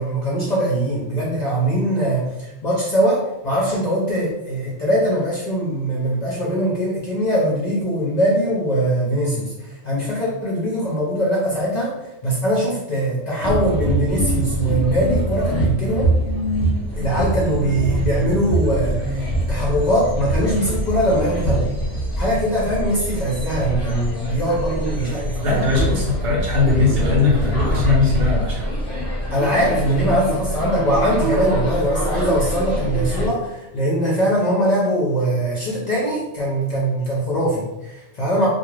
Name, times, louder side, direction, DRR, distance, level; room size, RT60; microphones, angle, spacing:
voice 1, 0.0-11.9 12.2-16.1 16.9-21.7 22.2-25.6 29.3-38.5, right 1 dB, 50° left, -5 dB, 0.5 m, -21 dB
sound 1, 13.4-33.3, right 1 dB, 15° left, 0.8 m, -24 dB
voice 2, 25.4-28.6, left 4 dB, 60° right, -3 dB, 0.8 m, -19 dB
2.3 x 2.0 x 3.1 m, 0.95 s
omnidirectional pair, 1.2 m